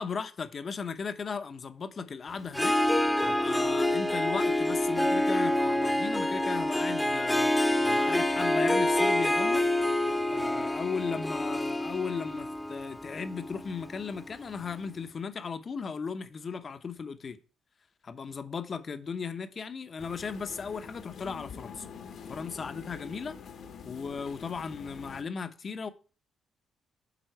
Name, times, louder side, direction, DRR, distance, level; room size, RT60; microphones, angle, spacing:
voice 1, 0.0-9.6 10.3-17.4 18.0-21.9 22.3-23.4 23.8-25.9, left 5 dB, 45° left, 0.8 m, -36 dB
Harp, 2.5-14.4, left 1 dB, 5° left, 0.9 m, -27 dB
sound 1, 20.0-25.2, left 6 dB, 70° left, 1.2 m, -45 dB
9.2 x 3.7 x 4.5 m
cardioid pair, 90°, 0 cm